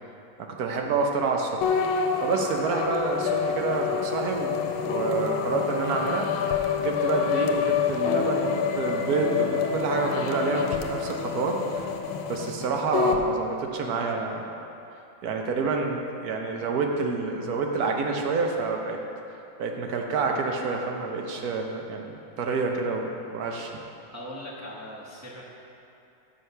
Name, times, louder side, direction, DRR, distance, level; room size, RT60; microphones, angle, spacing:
voice 1, 0.4-1.6 2.2-6.3 6.8-11.9 12.3-14.5 15.2-19.0 19.6-23.7, right 4 dB, 65° right, 2 dB, 0.9 m, -28 dB
sound 1, 1.6-13.2, left 7 dB, 90° left, 1.4 m, -27 dB
voice 2, 24.1-25.4, left 1 dB, 20° right, -7 dB, 0.4 m, -40 dB
6.4 x 6.2 x 5.5 m, 2.9 s
omnidirectional pair, 2.2 m